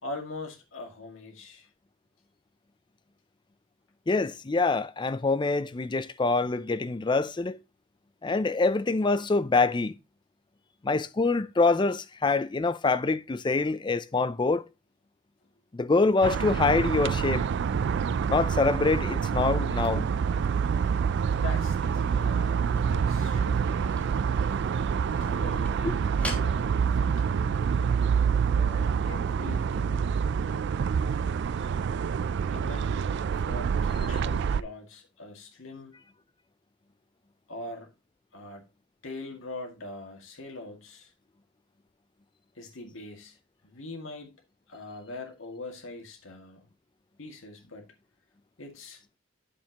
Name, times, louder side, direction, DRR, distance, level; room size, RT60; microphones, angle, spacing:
voice 1, 0.0-1.7 21.3-24.3 25.2-26.6 26.9-27.1 27.7-27.9 28.5-30.1 30.4-30.7 32.5-33.0 33.3-35.9 37.5-37.9 38.3-38.7 39.0-41.1 42.6-43.4 43.6-44.3 44.7-46.7 47.2-47.9 48.6-49.0, left 2 dB, 65° left, 2.0 m, -42 dB
voice 2, 4.1-7.6 8.2-9.9 10.8-14.6 15.7-17.5 18.3-20.1 25.8-25.9, left 3 dB, 20° left, 0.4 m, -25 dB
sound 1, 16.2-34.6, right 6 dB, 55° right, 0.3 m, -27 dB
sound 2, 19.7-27.0 27.6-27.7, left 1 dB, 5° left, 1.4 m, -46 dB
8.7 x 7.3 x 2.9 m
head